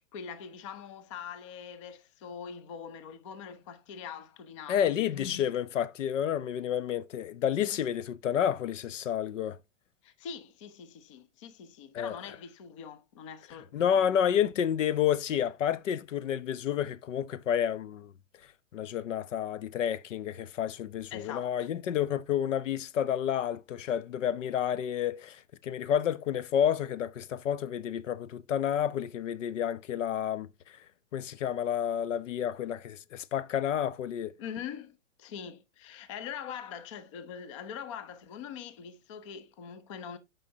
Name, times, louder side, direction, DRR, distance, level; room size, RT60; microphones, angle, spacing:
voice 1, 0.0-5.5 10.0-14.2 21.1-21.7 34.4-40.2, left 7 dB, 25° left, 0.5 m, -43 dB
voice 2, 4.7-9.6 11.9-12.2 13.7-18.1 18.7-30.8 31.1-34.3, left 9 dB, 70° left, 0.7 m, -30 dB
8.9 x 5.4 x 2.8 m
hypercardioid pair, 160°, 39 cm